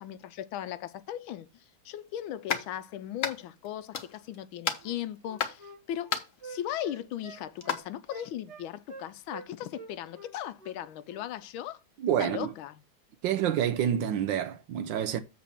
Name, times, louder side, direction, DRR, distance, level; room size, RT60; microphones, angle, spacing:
voice 1, 0.0-6.1 6.4-11.8 12.2-12.8, left 11 dB, 80° left, 1.4 m, -38 dB
sound 1, 2.5-2.7 3.2-3.7 3.9-4.4 4.6-5.6 6.1-6.4 7.6-7.8, left 7 dB, 50° left, 1.1 m, -32 dB
Wind instrument woodwind instrument, 4.8-9.5 9.7-10.8 11.1-11.3, right 4 dB, 35° right, 1.4 m, -47 dB
voice 2, 12.0-12.5 13.2-15.2, right 9 dB, 70° right, 1.3 m, -28 dB
7.8 x 4.1 x 6.8 m
omnidirectional pair, 2.3 m